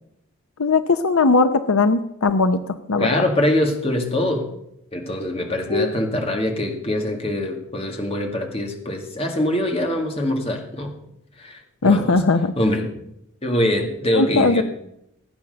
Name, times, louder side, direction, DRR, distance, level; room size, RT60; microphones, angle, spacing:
voice 1, 0.6-3.1 5.7-5.9 11.8-12.5 14.1-14.6, left 3 dB, 75° left, 11 dB, 0.7 m, -18 dB
voice 2, 3.0-4.5 4.9-11.0 11.4-12.1 12.6-12.9 13.4-14.6, left 1 dB, 25° left, 3 dB, 2.1 m, -23 dB
16.5 x 8.9 x 6.8 m, 0.78 s
head